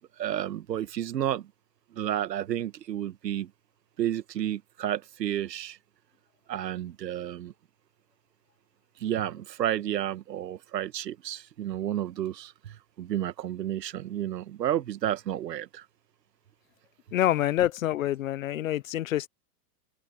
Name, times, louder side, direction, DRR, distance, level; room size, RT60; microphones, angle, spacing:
voice 1, 0.2-1.5 1.9-3.5 4.0-5.8 6.5-7.5 9.0-15.9, right 11 dB, 80° right, 1.6 m, -31 dB
voice 2, 17.1-19.3, left 13 dB, 55° left, 0.6 m, -26 dB
hypercardioid pair, 175°, 49 cm